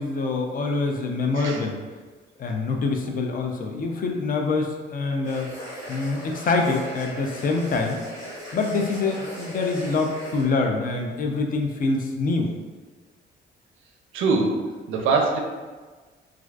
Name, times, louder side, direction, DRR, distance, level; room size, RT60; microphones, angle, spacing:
voice 1, 0.0-1.8 2.4-5.5 5.9-8.0 8.5-12.5, left 3 dB, 45° left, 2 dB, 0.4 m, -25 dB
sound 1, 5.2-10.4, equal, 75° left, 1.2 m, -38 dB
voice 2, 14.1-15.4, right 3 dB, 85° right, 2 dB, 0.4 m, -23 dB
2.4 x 2.3 x 2.2 m, 1.4 s
cardioid pair, 90°, 20 cm